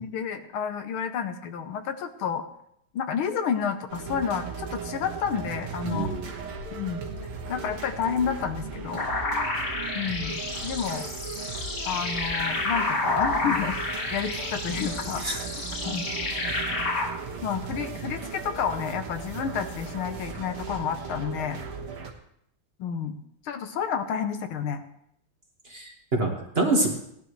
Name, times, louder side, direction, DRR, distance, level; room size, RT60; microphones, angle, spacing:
voice 1, 0.0-2.4 2.9-6.1 6.7-7.0 7.5-9.1 9.9-11.1 11.9-13.8 14.1-15.4 15.9-16.1 17.4-21.6 22.8-23.2 23.4-24.9, left 7 dB, 80° left, 8 dB, 1.8 m, -30 dB
sound 1, 3.9-22.1, right 5 dB, 85° right, 2.3 m, -37 dB
voice 2, 5.8-6.3 15.2-15.4 25.7-26.9, right 2 dB, 30° right, 0 dB, 1.8 m, -26 dB
sound 2, 9.0-17.1, left 2 dB, 50° left, 2.8 m, -30 dB
17.5 x 11.5 x 3.2 m, 0.73 s
omnidirectional pair, 2.3 m